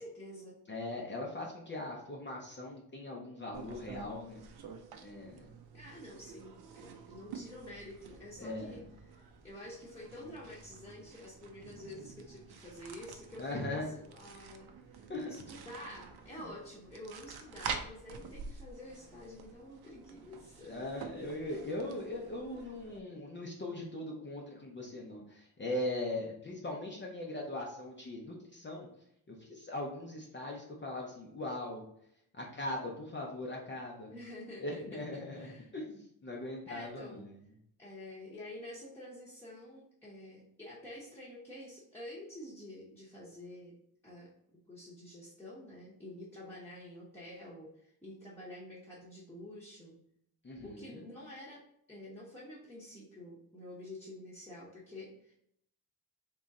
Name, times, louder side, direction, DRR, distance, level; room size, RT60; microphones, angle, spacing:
voice 1, 0.0-0.6 5.7-8.8 9.1-20.8 21.2-21.3 34.1-35.7 36.7-37.2 37.8-43.7 44.0-44.3 44.7-50.0 50.6-51.6 51.9-55.3, left 1 dB, 5° left, -9 dB, 0.9 m, -49 dB
voice 2, 0.7-4.4 5.0-5.5 8.4-8.8 13.4-13.9 15.1-15.3 20.7-28.9 29.3-31.8 32.3-34.1 34.6-37.3 50.4-51.0, left 1 dB, 30° left, -2 dB, 0.6 m, -40 dB
sound 1, 3.5-23.0, right 6 dB, 80° right, 0.6 m, -48 dB
3.7 x 3.1 x 4.1 m, 0.72 s
wide cardioid pair, 180°, 38 cm